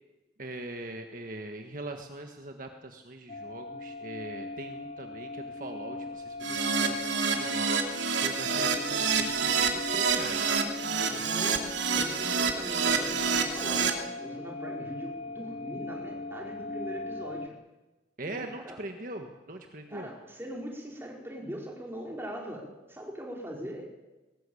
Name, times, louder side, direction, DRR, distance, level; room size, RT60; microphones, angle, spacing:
voice 1, 0.4-7.8 8.2-10.5 18.2-20.1, right 2 dB, 50° right, 4 dB, 1.6 m, -41 dB
sound 1, 3.3-17.5, left 2 dB, 35° left, 0.7 m, -40 dB
Keyboard (musical), 6.4-13.9, right 5 dB, 85° right, 2.7 m, -28 dB
voice 2, 8.5-9.1 11.1-11.7 11.9-17.6 18.2-18.8 19.9-23.9, equal, 15° right, -1 dB, 4.6 m, -41 dB
20.0 x 19.0 x 8.6 m, 1.1 s
head